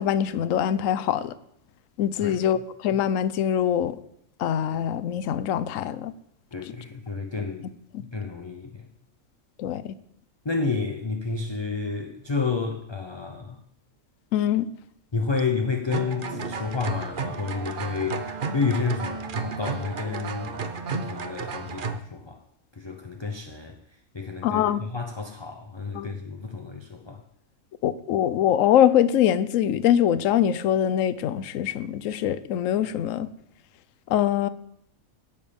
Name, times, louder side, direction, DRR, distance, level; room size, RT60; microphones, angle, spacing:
voice 1, 0.0-1.4 2.0-4.0 4.4-6.1 9.6-9.9 14.3-14.7 24.4-24.8 25.9-26.1 27.8-33.3 34.1-34.5, left 10 dB, 70° left, 15 dB, 1.0 m, -23 dB
voice 2, 6.5-7.7 8.1-8.9 10.4-13.6 15.1-18.2 18.5-20.6 20.9-22.4 22.7-23.8 24.1-27.2, left 4 dB, 25° left, 4 dB, 0.7 m, -30 dB
sound 1, 15.9-22.0, right 5 dB, 45° right, 0.8 m, -32 dB
17.0 x 7.1 x 5.3 m, 0.74 s
omnidirectional pair, 1.5 m